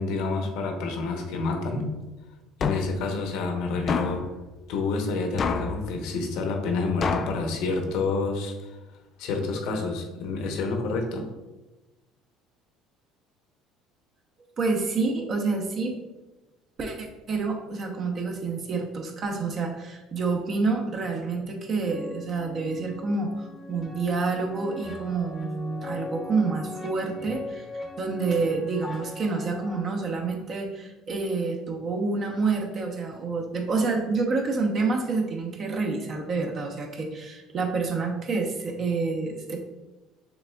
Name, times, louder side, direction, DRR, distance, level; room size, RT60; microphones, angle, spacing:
voice 1, 0.0-1.9 2.6-4.2 4.7-8.5 9.2-11.3, left 3 dB, 75° left, 3 dB, 0.8 m, -28 dB
sound 1, 2.6-3.0 3.9-4.3 5.4-5.8 7.0-7.4, left 5 dB, 35° left, 0.3 m, -27 dB
voice 2, 14.6-15.9 16.8-27.6 28.0-39.6, right 4 dB, 40° right, 2 dB, 0.8 m, -28 dB
sound 2, 21.8-29.8, left 3 dB, 15° left, 0.7 m, -40 dB
6.3 x 3.4 x 2.3 m, 1.1 s
cardioid pair, 120°, 0 cm